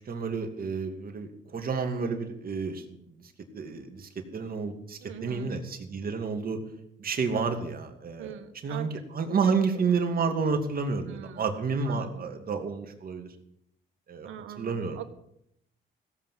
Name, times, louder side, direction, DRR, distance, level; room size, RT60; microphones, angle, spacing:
voice 1, 0.0-3.0 3.5-6.6 7.0-8.3 8.6-13.3 14.1-14.3 14.6-15.0, right 5 dB, 45° right, 4 dB, 2.6 m, -30 dB
voice 2, 5.0-5.6 8.2-8.9 9.4-9.5 11.1-11.5 11.8-12.3 14.2-15.0, right 9 dB, 85° right, 7 dB, 1.7 m, -42 dB
16.5 x 8.2 x 7.6 m, 0.76 s
cardioid pair, 90°, 20 cm